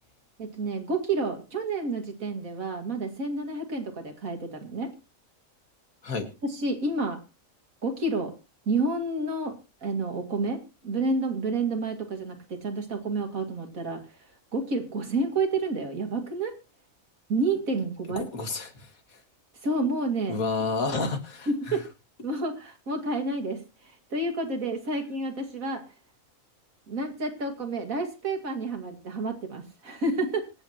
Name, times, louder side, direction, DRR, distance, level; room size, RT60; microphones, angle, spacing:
voice 1, 0.4-4.9 6.4-7.2 7.8-8.3 8.7-14.0 14.5-16.5 17.3-18.3 19.6-20.4 21.5-21.8 22.2-25.8 26.9-30.4, right 2 dB, 75° right, 4 dB, 2.7 m, -29 dB
voice 2, 18.2-19.2 20.3-21.8, left 3 dB, 85° left, 6 dB, 2.3 m, -31 dB
25.0 x 8.8 x 3.0 m, 0.30 s
omnidirectional pair, 1.4 m